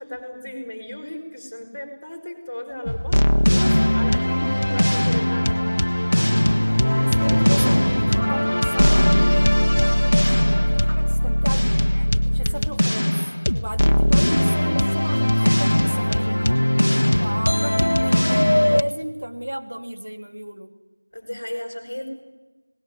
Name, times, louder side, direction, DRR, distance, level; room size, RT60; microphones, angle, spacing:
voice 1, 0.0-5.9 12.4-12.8 21.1-22.1, left 1 dB, 35° left, 6 dB, 4.4 m, -35 dB
sound 1, 2.9-18.8, left 1 dB, 70° left, 1.6 m, -19 dB
sound 2, 5.6-9.9, equal, 30° right, 2.9 m, -31 dB
voice 2, 7.0-9.2 9.8-16.5 17.2-20.7, right 1 dB, 60° right, 5 dB, 2.9 m, -34 dB
29.5 x 19.0 x 9.8 m, 1.2 s
figure-of-eight pair, 180°, 0 cm